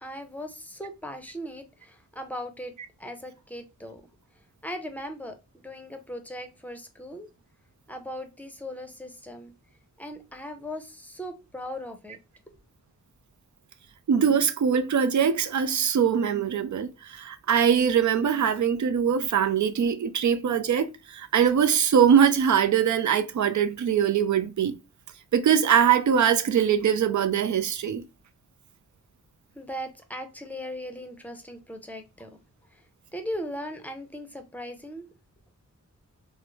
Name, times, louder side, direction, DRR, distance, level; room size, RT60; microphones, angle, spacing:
voice 1, 0.0-2.7 3.0-4.1 4.6-7.3 7.9-9.5 10.0-12.2 29.5-32.4 32.7-32.9 33.1-35.0, equal, 5° left, 0.6 m, -38 dB
voice 2, 14.1-24.8 25.3-28.0, right 8 dB, 65° right, 0.5 m, -22 dB
3.6 x 2.0 x 3.0 m
wide cardioid pair, 90°, 31 cm